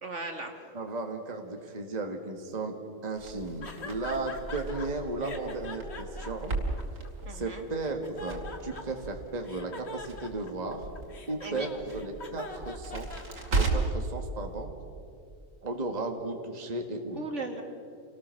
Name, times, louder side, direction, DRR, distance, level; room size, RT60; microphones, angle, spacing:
voice 1, 0.0-0.6 7.3-7.6 11.4-11.7 17.2-17.6, right 3 dB, 50° right, 4 dB, 2.0 m, -37 dB
voice 2, 0.7-2.8 3.0-6.5 7.3-10.9 11.3-13.1 13.5-14.7 15.6-17.3, right 2 dB, 25° right, 4 dB, 1.7 m, -35 dB
Crackle, 3.2-14.1, right 3 dB, 70° right, 3.1 m, -36 dB
sound 1, 3.6-4.9 5.2-7.4 7.8-9.1 9.4-13.7, left 3 dB, 45° left, 1.9 m, -43 dB
28.0 x 19.0 x 6.4 m, 2.5 s
omnidirectional pair, 1.7 m